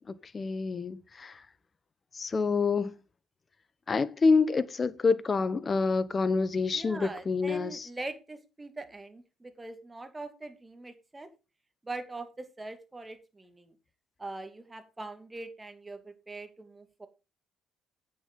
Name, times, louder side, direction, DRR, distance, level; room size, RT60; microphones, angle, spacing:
voice 1, 0.3-1.4 2.1-2.9 3.9-7.9, left 4 dB, 35° left, 1.0 m, -27 dB
voice 2, 6.7-11.3 11.8-13.7 14.2-17.1, right 2 dB, 20° right, 2.3 m, -42 dB
8.6 x 7.0 x 5.3 m
supercardioid pair, 65°, 0 cm